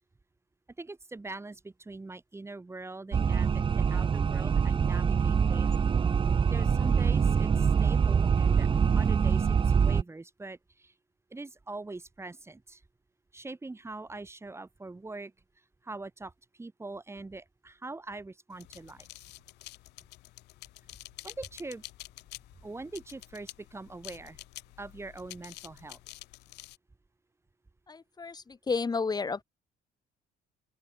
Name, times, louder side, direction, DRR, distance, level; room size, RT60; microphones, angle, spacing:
voice 1, 0.8-5.9 6.5-8.7 8.9-10.9 11.3-12.8 13.3-15.3 15.8-19.1 21.2-21.8 22.6-24.4 24.8-26.0, right 3 dB, 15° right, 3.6 m, -43 dB
sound 1, 3.1-10.0, right 6 dB, 30° right, 0.9 m, -25 dB
sound 2, 18.5-26.8, left 19 dB, 85° left, 2.2 m, -49 dB
voice 2, 27.9-29.4, left 4 dB, 25° left, 1.9 m, -32 dB
open air
cardioid pair, 110°, 17 cm